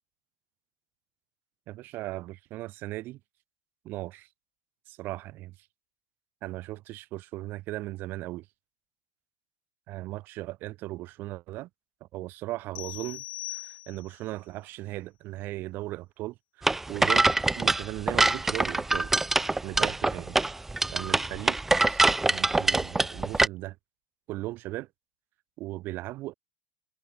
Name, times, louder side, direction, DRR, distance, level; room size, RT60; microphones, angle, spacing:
voice 1, 1.7-3.2 3.8-4.3 4.9-5.5 6.4-8.5 9.9-11.7 12.0-13.2 13.5-17.3 17.5-19.1 19.6-20.4 20.9-23.8 24.3-24.9 25.6-26.3, right 17 dB, 40° right, 3.5 m, -37 dB
sound 1, 12.7-14.3, left 18 dB, 80° left, 5.3 m, -40 dB
sound 2, 16.6-23.5, right 2 dB, 5° right, 0.4 m, -24 dB
supercardioid pair, 165°, 5 cm